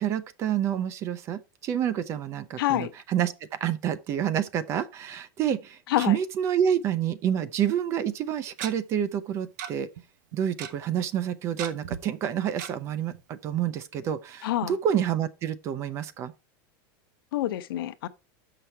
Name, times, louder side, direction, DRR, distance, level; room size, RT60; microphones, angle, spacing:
voice 1, 0.0-9.9 10.3-16.3, right 9 dB, 25° right, 0.5 m, -28 dB
voice 2, 2.6-2.9 5.9-6.2 14.4-14.8 17.3-18.1, left 14 dB, 90° left, 0.8 m, -27 dB
Tick-tock, 7.7-7.8 8.6-8.7 9.6-9.7 10.0-10.1 10.3-10.7 11.6-12.0 12.6-12.7 13.1-13.2 13.5-13.6, right 9 dB, 55° right, 0.9 m, -35 dB
6.7 x 5.8 x 4.5 m
supercardioid pair, 175°, 11 cm